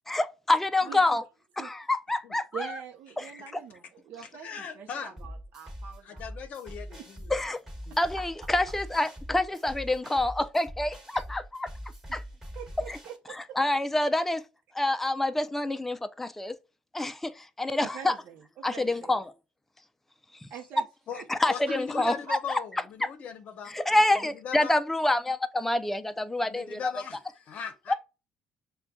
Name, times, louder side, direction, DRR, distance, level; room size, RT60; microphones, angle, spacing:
voice 1, 0.1-1.2 1.6-2.8 3.2-3.3 7.3-7.6 8.0-11.7 12.1-12.2 12.9-13.0 13.3-14.4 14.7-16.6 16.9-18.1 18.6-19.2 20.4-20.5 21.3-22.1 22.5-23.1 23.7-26.9 27.9-28.0, left 2 dB, 10° left, 0.4 m, -27 dB
voice 2, 2.5-6.2 7.0-7.1 11.1-11.2 12.1-12.2 12.5-13.8 17.8-19.2 20.5-20.8 21.1-22.0, right 8 dB, 65° right, 0.7 m, -44 dB
voice 3, 4.4-5.1 6.0-7.3 7.8-8.0 21.1-21.2 21.5-23.8 24.2-24.7 26.4-27.9, left 7 dB, 50° left, 0.7 m, -39 dB
sound 1, 5.2-13.2, equal, 15° right, 1.2 m, -42 dB
6.5 x 2.2 x 2.2 m
cardioid pair, 120°, 3 cm